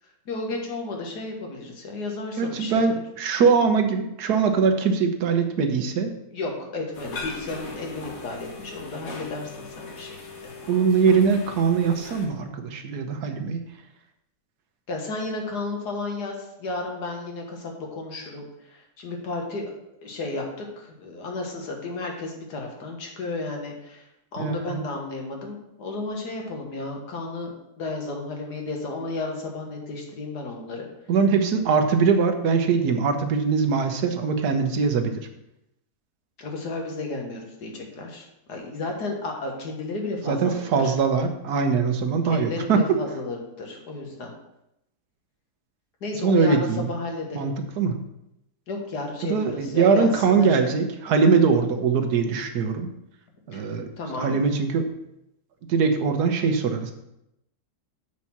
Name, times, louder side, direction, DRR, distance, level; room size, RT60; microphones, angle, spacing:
voice 1, 0.3-3.0 6.3-10.2 10.4-10.5 14.9-19.7 20.0-30.9 36.4-40.9 42.2-44.3 46.0-47.5 48.7-50.6 53.5-53.6 54.0-54.4, left 3 dB, 80° left, 1 dB, 2.0 m, -33 dB
voice 2, 2.4-6.1 10.7-13.6 24.4-24.8 31.1-35.3 40.3-42.8 46.2-46.9 47.3-48.0 49.2-52.9 53.5-53.9 54.2-54.9 55.7-56.9, right 5 dB, 75° right, 6 dB, 1.4 m, -22 dB
sound 1, 6.9-12.3, left 3 dB, 60° left, 1.8 m, -39 dB
8.1 x 4.3 x 5.9 m, 0.84 s
omnidirectional pair, 1.7 m